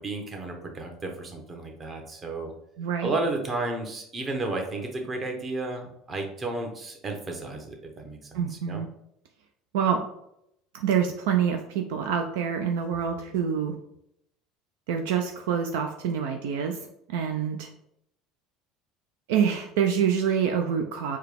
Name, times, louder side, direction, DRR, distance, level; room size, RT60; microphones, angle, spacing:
voice 1, 0.0-2.5 3.0-8.8, right 2 dB, 30° right, 3 dB, 1.0 m, -33 dB
voice 2, 2.8-3.1 8.3-8.9 9.7-10.0 10.7-13.8 14.9-16.8 17.1-17.7 19.3-21.2, right 7 dB, 75° right, 4 dB, 0.3 m, -26 dB
4.5 x 2.3 x 3.4 m, 0.76 s
hypercardioid pair, 75°, 0 cm